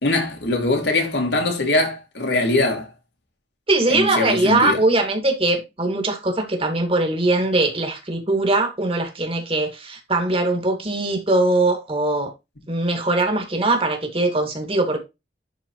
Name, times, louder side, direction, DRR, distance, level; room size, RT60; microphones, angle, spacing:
voice 1, 0.0-2.9 3.9-4.8, left 2 dB, 70° left, 2.3 m, -22 dB
voice 2, 3.7-12.3 12.7-15.0, right 2 dB, 35° right, 2.1 m, -21 dB
11.0 x 4.1 x 3.0 m
head